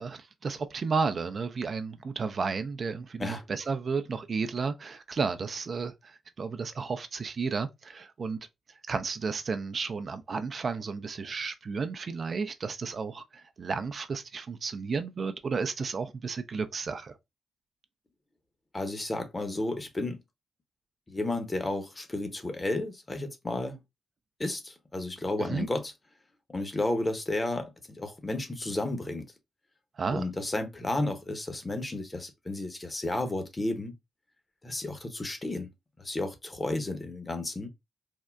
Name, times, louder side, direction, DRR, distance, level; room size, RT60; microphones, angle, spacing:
voice 1, 0.0-8.4 8.9-17.1 25.4-25.7 30.0-30.3, right 5 dB, 55° right, 0.4 m, -32 dB
voice 2, 18.7-20.2 21.1-23.8 24.4-25.9 26.5-29.3 30.1-33.9 34.6-35.7 36.0-37.7, left 2 dB, 30° left, 0.8 m, -32 dB
3.5 x 2.1 x 2.3 m
hypercardioid pair, 45°, 0 cm